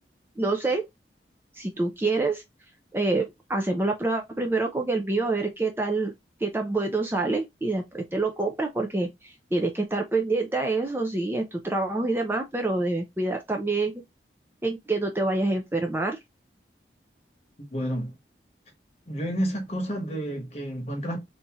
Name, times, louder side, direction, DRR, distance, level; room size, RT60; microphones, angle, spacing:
voice 1, 0.4-0.8 1.5-2.4 2.9-6.1 6.4-14.0 14.6-16.2, right 2 dB, 15° right, 0.4 m, -26 dB
voice 2, 17.6-18.2 19.1-21.2, equal, 35° left, 1.1 m, -30 dB
3.5 x 2.8 x 2.9 m
head